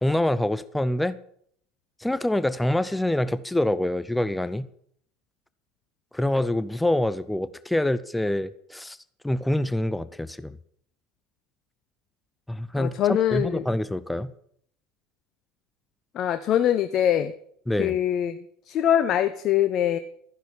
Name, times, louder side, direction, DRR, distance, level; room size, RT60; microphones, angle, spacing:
voice 1, 0.0-1.2 2.0-4.7 6.1-9.0 9.2-10.6 12.5-14.3 17.7-17.9, left 1 dB, 5° left, 0.6 m, -26 dB
voice 2, 12.7-13.7 16.1-17.3 17.8-18.4 18.7-20.0, left 10 dB, 40° left, 0.8 m, -23 dB
13.5 x 10.0 x 7.2 m
figure-of-eight pair, 70°, 0 cm